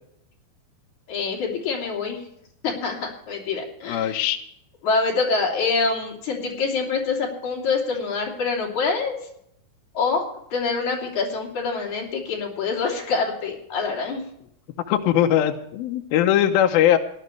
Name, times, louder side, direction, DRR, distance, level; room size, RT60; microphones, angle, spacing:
voice 1, 1.1-2.2 2.6-4.2 4.8-9.2 9.9-10.3 10.5-14.2, left 4 dB, 50° left, -1 dB, 4.1 m, -25 dB
voice 2, 3.9-4.4 14.9-17.0, left 11 dB, 80° left, 4 dB, 2.5 m, -20 dB
18.0 x 12.0 x 3.2 m, 0.72 s
omnidirectional pair, 4.4 m